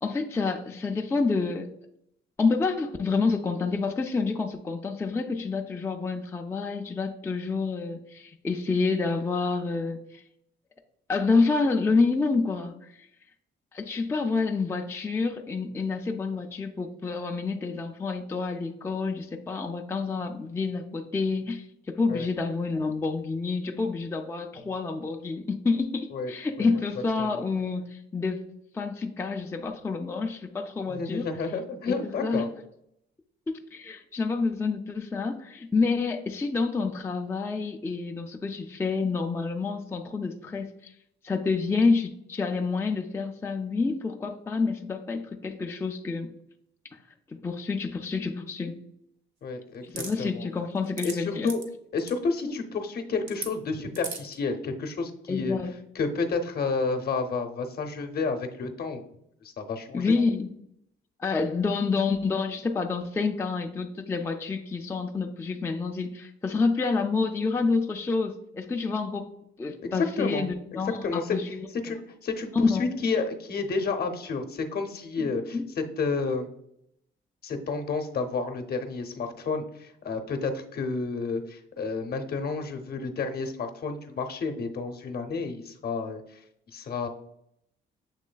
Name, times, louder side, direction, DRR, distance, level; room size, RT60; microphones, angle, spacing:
voice 1, 0.0-1.7 2.4-10.2 11.1-13.1 13.7-28.4 28.7-31.3 31.9-32.5 33.5-40.9 41.2-46.3 46.9-47.0 47.3-48.8 49.8-51.5 52.5-52.6 55.3-55.7 59.9-60.5 61.2-69.3 69.6-71.7 72.5-72.9 75.2-75.7, left 4 dB, 15° left, 3 dB, 0.4 m, -28 dB
voice 2, 30.9-32.5 49.4-50.4 51.0-51.6 51.9-55.6 55.9-59.0 59.4-60.2 69.8-70.5 70.7-71.4 71.8-76.5 77.4-86.2 86.7-87.1, left 4 dB, 50° left, 6 dB, 0.7 m, -30 dB
sound 1, 50.0-50.1 50.8-51.1 51.5-51.6 52.0-52.1 53.3-53.5 54.0-54.3, right 4 dB, 75° right, 1.0 m, -35 dB
7.2 x 3.1 x 2.2 m, 0.76 s
cardioid pair, 90°, 20 cm